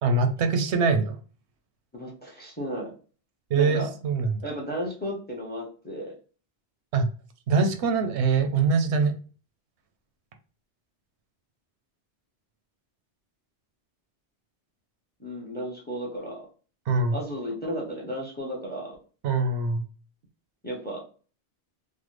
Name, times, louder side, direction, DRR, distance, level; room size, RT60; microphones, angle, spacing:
voice 1, 0.0-1.2 3.5-4.4 6.9-7.1 7.5-9.1 16.9-17.2 19.2-19.8, right 4 dB, 80° right, 6 dB, 0.9 m, -23 dB
voice 2, 1.9-2.9 3.6-3.9 4.4-6.1 15.2-16.5 17.1-19.0 20.6-21.0, equal, 10° left, 0 dB, 0.6 m, -34 dB
3.2 x 2.1 x 3.1 m, 0.38 s
omnidirectional pair, 1.1 m